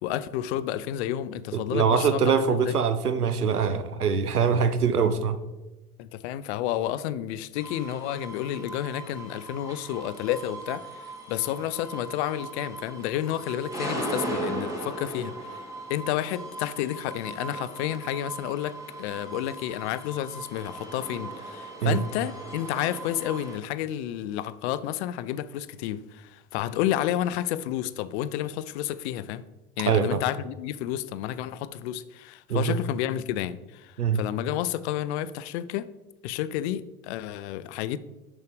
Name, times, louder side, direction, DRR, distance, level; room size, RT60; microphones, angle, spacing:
voice 1, 0.0-2.8 6.0-15.6 15.9-29.4 29.8-35.9 36.2-38.0, left 12 dB, 50° left, 0.5 m, -31 dB
voice 2, 1.5-5.4 21.8-22.0 29.9-30.2 32.5-32.8 34.0-34.2, right 6 dB, 85° right, 0.6 m, -23 dB
sound 1, 7.6-23.6, right 2 dB, 5° right, 2.3 m, -38 dB
6.5 x 6.3 x 5.1 m
figure-of-eight pair, 70°, 45 cm